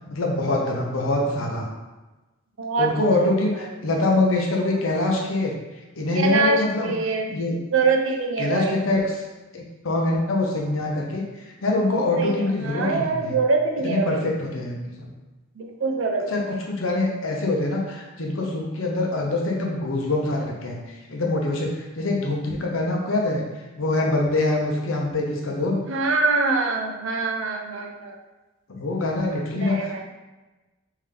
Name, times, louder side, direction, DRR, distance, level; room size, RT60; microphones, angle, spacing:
voice 1, 0.1-1.7 2.8-5.5 6.0-6.9 7.3-7.6 8.4-9.0 9.5-11.2 11.6-13.4 13.8-15.1 16.3-16.4 16.7-20.8 21.1-23.4 23.8-25.8 28.7-30.0, left 2 dB, 85° left, -1 dB, 0.7 m, -24 dB
voice 2, 2.6-2.9 3.6-3.7 6.1-7.3 7.7-8.8 12.2-14.3 15.6-16.6 25.9-28.2 29.5-30.0, right 3 dB, 75° right, 3 dB, 0.5 m, -24 dB
3.5 x 2.7 x 3.3 m, 1.1 s
head